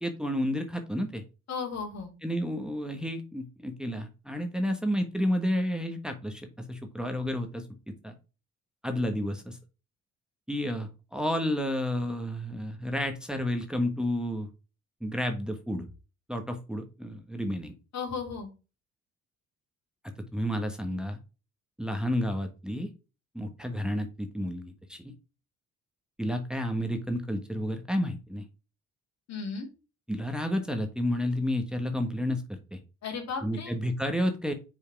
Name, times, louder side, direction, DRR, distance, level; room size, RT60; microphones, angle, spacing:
voice 1, 0.0-1.2 2.2-8.1 8.8-9.6 10.5-14.5 15.0-15.9 16.3-17.7 20.3-21.2 21.8-22.9 23.3-25.1 26.2-28.5 30.1-32.4 32.7-32.8 33.4-34.5, equal, 5° right, 5 dB, 1.3 m, -31 dB
voice 2, 1.5-2.1 17.9-18.5 29.3-29.7 33.0-33.7, left 5 dB, 60° left, 1 dB, 2.8 m, -35 dB
5.6 x 4.6 x 5.8 m, 0.32 s
cardioid pair, 90°, 30 cm